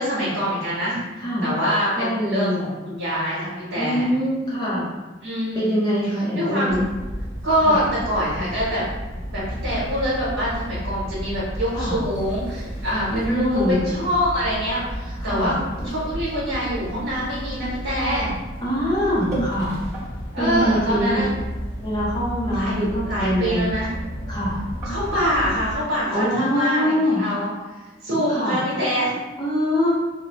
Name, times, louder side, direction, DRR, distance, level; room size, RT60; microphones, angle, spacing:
voice 1, 0.0-1.0 1.4-4.1 5.2-5.7 6.3-6.8 7.4-8.8 9.3-15.5 15.8-18.3 20.3-21.3 22.5-22.8 23.1-23.9 24.8-27.5 28.0-29.1, equal, 85° right, -8 dB, 1.0 m, -24 dB
voice 2, 2.0-2.6 3.8-4.9 5.5-6.8 7.6-7.8 11.7-12.0 13.1-13.8 15.2-15.5 18.6-19.7 20.4-21.2 21.8-23.7 24.3-24.6 26.1-27.2 28.3-28.6 29.4-30.0, equal, 20° left, -7 dB, 0.6 m, -23 dB
sound 1, 6.7-25.8, equal, 65° left, 1.1 m, -33 dB
sound 2, 15.2-20.0 20.5-20.9 21.2-21.5 21.8-21.9 22.9-24.1 24.4-25.2, right 2 dB, 15° right, 1.0 m, -35 dB
2.6 x 2.1 x 3.0 m, 1.2 s
head